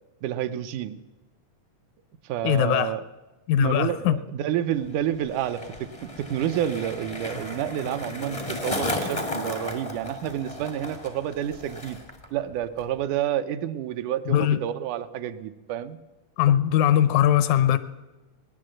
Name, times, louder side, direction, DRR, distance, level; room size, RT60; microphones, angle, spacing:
voice 1, 0.2-1.0 2.2-3.0 3.6-5.9 6.2-12.0 12.3-16.0, right 11 dB, 80° right, 10 dB, 2.2 m, -29 dB
voice 2, 2.4-3.0 3.5-4.2 14.3-14.6 16.4-17.8, left 11 dB, 80° left, 14 dB, 1.9 m, -20 dB
Skateboard, 4.7-12.3 12.5-13.0, left 1 dB, 45° left, 0.4 m, -34 dB
18.5 x 10.0 x 7.6 m, 1.1 s
omnidirectional pair, 3.6 m